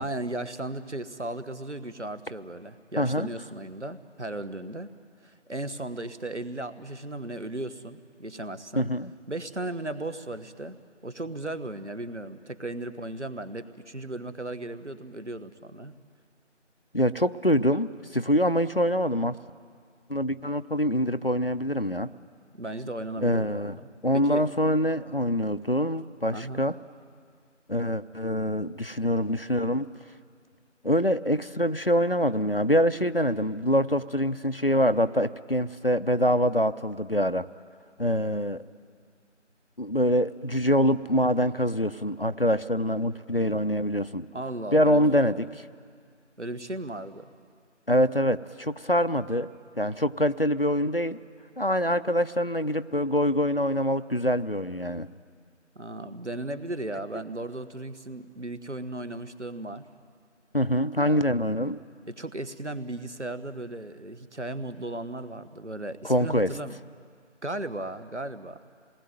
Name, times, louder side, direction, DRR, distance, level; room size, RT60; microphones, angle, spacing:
voice 1, 0.0-4.9 5.2-8.9 9.3-10.8 11.0-16.0 22.6-23.9 24.2-24.5 26.3-26.6 44.3-45.0 46.4-47.3 55.7-59.8 61.0-61.3 62.1-66.8 67.4-68.6, right 2 dB, 70° right, 11 dB, 1.5 m, -36 dB
voice 2, 3.0-3.3 8.8-9.1 16.9-19.3 20.1-22.1 23.2-23.8 24.0-26.8 27.7-29.9 30.8-37.5 38.0-38.6 39.8-44.3 44.7-45.6 47.9-49.5 49.8-51.2 51.6-55.1 60.5-61.8 66.0-66.5, equal, 50° left, 13 dB, 0.6 m, -25 dB
27.5 x 19.5 x 9.2 m, 2.1 s
figure-of-eight pair, 180°, 36 cm